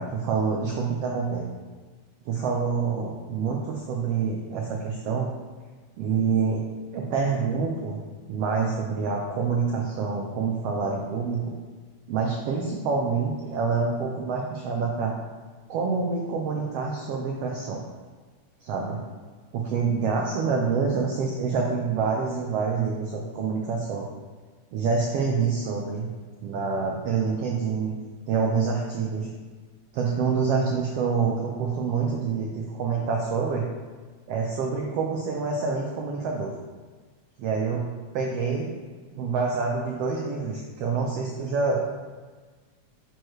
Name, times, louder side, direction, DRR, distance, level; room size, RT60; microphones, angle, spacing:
voice 1, 0.0-1.4 2.3-5.3 6.0-6.6 6.9-8.0 8.3-11.5 12.1-15.1 15.7-17.8 18.6-19.0 19.5-24.1 24.7-26.1 26.4-27.9 28.3-29.3 29.9-33.7 34.3-36.5 37.4-37.8 38.1-38.7 39.1-42.0, right 5 dB, 80° right, 0 dB, 1.4 m, -27 dB
9.1 x 6.4 x 3.1 m, 1.4 s
omnidirectional pair, 3.6 m